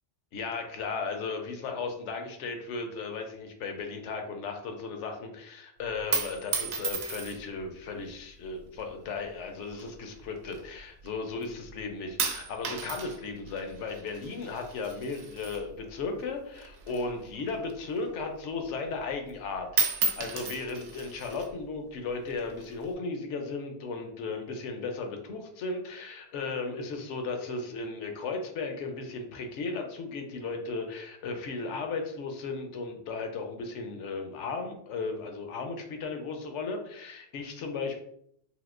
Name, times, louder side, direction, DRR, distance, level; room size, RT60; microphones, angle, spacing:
voice 1, 0.3-38.0, left 4 dB, 80° left, 4 dB, 0.9 m, -36 dB
sound 1, 5.9-7.6 8.4-8.9 9.7-11.1 11.4-11.8 12.2-16.3 16.5-18.2 18.6-18.7 19.0-19.4 19.7-21.5 22.3-22.9, right 5 dB, 70° right, 0.8 m, -34 dB
3.4 x 2.7 x 2.5 m, 0.70 s
omnidirectional pair, 1.2 m